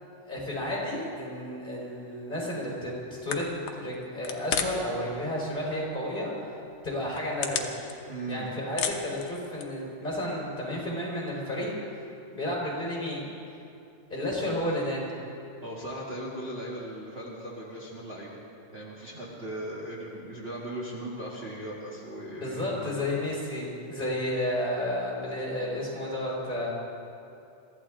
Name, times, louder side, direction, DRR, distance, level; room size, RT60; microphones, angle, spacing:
voice 1, 0.3-6.3 6.8-7.6 8.3-11.7 12.3-13.2 14.1-15.1 22.4-26.7, left 1 dB, 15° left, -5 dB, 4.1 m, -32 dB
sound 1, 3.3-5.0 5.2-5.8 6.3-6.4 6.9-8.3 8.6-9.9, left 8 dB, 70° left, 2.1 m, -33 dB
voice 2, 8.1-8.5 15.6-18.4 18.7-23.1, right 1 dB, 50° right, -5 dB, 0.7 m, -38 dB
23.0 x 14.5 x 3.8 m, 2.7 s
omnidirectional pair, 3.8 m